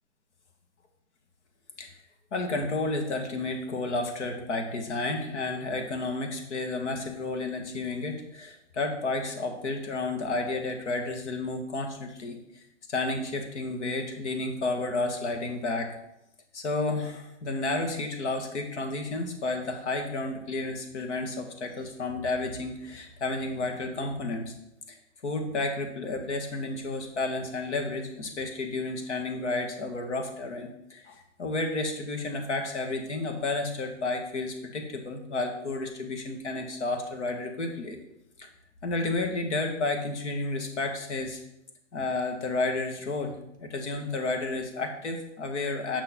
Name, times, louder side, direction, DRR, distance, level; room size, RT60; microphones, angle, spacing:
voice 1, 2.3-12.6 12.9-16.0 16.5-24.5 24.9-25.0 25.2-38.0 38.4-38.5 38.8-41.4 41.9-46.0, left 2 dB, 75° left, 4 dB, 1.9 m, -31 dB
8.0 x 5.6 x 4.4 m, 0.80 s
hypercardioid pair, 140°, 35 cm